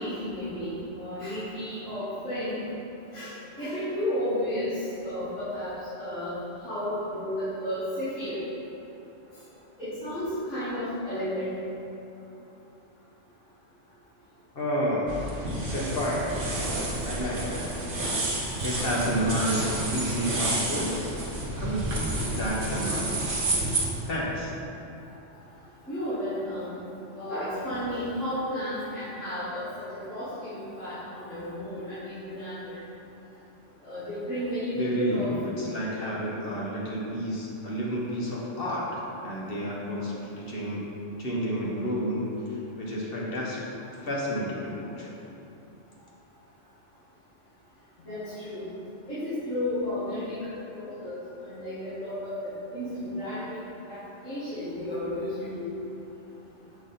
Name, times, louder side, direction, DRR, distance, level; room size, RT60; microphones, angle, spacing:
voice 1, 0.0-2.6 3.1-5.7 6.0-8.4 9.8-11.5 17.3-17.7 18.4-18.8 25.9-26.8 27.2-32.8 33.8-35.3 48.1-48.7 49.1-50.4 50.7-51.2 51.5-52.4 52.7-53.5 53.8-54.0 54.2-55.7, left 1 dB, 80° left, -15 dB, 2.2 m, -33 dB
voice 2, 14.5-15.1 15.5-16.4 17.0-17.6 18.6-21.0 21.5-23.1 24.1-24.5 34.7-40.9 41.2-43.6 44.0-45.1, equal, 50° left, -5 dB, 1.4 m, -30 dB
sound 1, 15.1-23.9, right 2 dB, 45° right, 1.2 m, -30 dB
7.4 x 4.8 x 4.1 m, 2.9 s
omnidirectional pair, 1.3 m